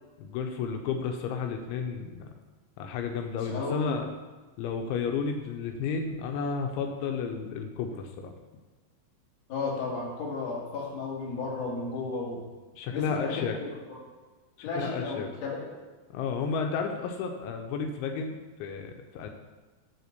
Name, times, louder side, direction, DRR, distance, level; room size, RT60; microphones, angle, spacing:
voice 1, 0.2-2.3 2.8-4.1 4.6-8.3 12.7-13.6 14.6-15.3 16.1-19.3, left 5 dB, 85° left, 4 dB, 3.0 m, -32 dB
voice 2, 3.4-4.0 9.5-12.4 12.9-14.0 14.6-15.7, left 3 dB, 50° left, -4 dB, 2.3 m, -34 dB
9.6 x 4.3 x 6.6 m, 1.3 s
omnidirectional pair, 5.4 m